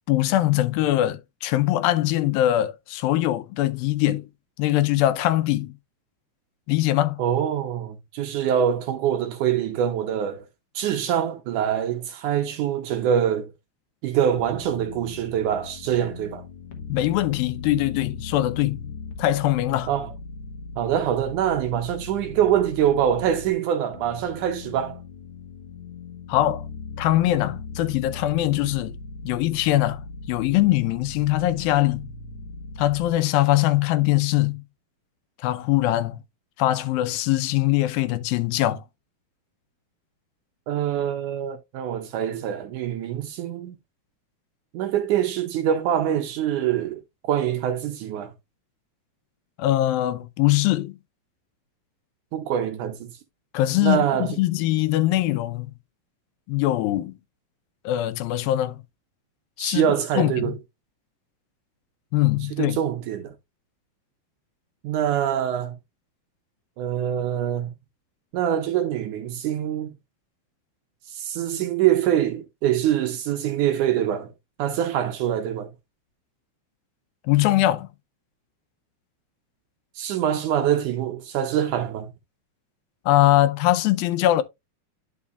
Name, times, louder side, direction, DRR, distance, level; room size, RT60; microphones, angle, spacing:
voice 1, 0.1-4.3 4.6-5.7 6.7-7.2 16.9-18.9 19.2-19.9 26.3-26.7 27.0-29.0 29.2-30.0 30.3-32.1 32.8-34.6 35.4-36.2 36.6-38.8 49.6-51.0 53.5-55.7 56.5-57.2 57.8-58.8 59.6-59.9 60.2-60.5 62.1-62.8 77.2-77.9 83.1-84.4, left 15 dB, 85° left, 2.5 m, -22 dB
voice 2, 7.2-10.5 10.7-13.5 14.0-16.4 19.9-20.1 20.8-25.0 40.7-43.8 44.7-48.3 52.3-53.1 53.8-54.3 59.6-60.5 62.5-63.3 64.8-65.8 66.8-67.7 68.3-69.9 71.1-74.3 74.6-75.7 80.0-82.1, right 10 dB, 70° right, 2.0 m, -24 dB
sound 1, 14.3-23.5 23.9-33.1, left 4 dB, 60° left, 1.5 m, -38 dB
10.5 x 5.4 x 2.3 m
omnidirectional pair, 4.2 m